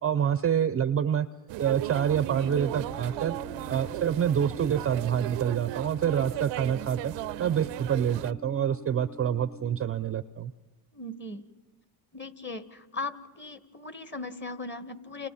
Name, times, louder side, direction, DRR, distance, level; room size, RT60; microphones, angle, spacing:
voice 1, 0.0-1.3 1.6-3.4 3.7-7.1 7.4-10.5, right 9 dB, 30° right, 15 dB, 0.6 m, -27 dB
sound 1, 1.5-8.3, right 18 dB, 65° right, 0.6 m, -36 dB
sound 2, 2.5-9.5, equal, 80° left, 7.9 m, -46 dB
voice 2, 10.9-11.5 12.1-15.3, left 3 dB, 25° left, 11 dB, 1.7 m, -38 dB
29.5 x 29.0 x 4.3 m, 1.3 s
supercardioid pair, 95°, 47 cm